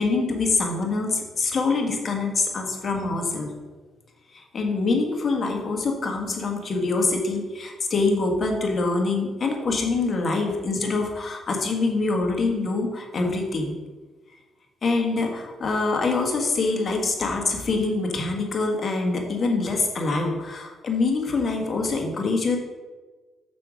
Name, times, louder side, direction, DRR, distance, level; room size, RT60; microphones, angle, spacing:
voice 1, 0.0-3.5 4.3-13.7 14.8-22.6, left 3 dB, 45° left, 2 dB, 1.4 m, -25 dB
6.8 x 5.3 x 5.0 m, 1.3 s
cardioid pair, 90°, 0 cm